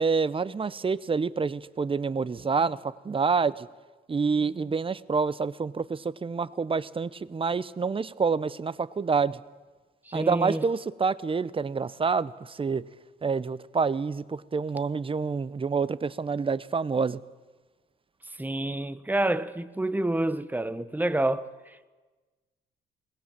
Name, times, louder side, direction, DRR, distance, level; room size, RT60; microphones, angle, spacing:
voice 1, 0.0-3.7 4.1-9.4 10.1-12.8 13.2-17.2, right 5 dB, 25° right, 0.7 m, -27 dB
voice 2, 10.1-10.6 18.4-21.9, right 1 dB, 10° right, 1.0 m, -28 dB
20.5 x 20.0 x 7.4 m
cardioid pair, 90°, 20 cm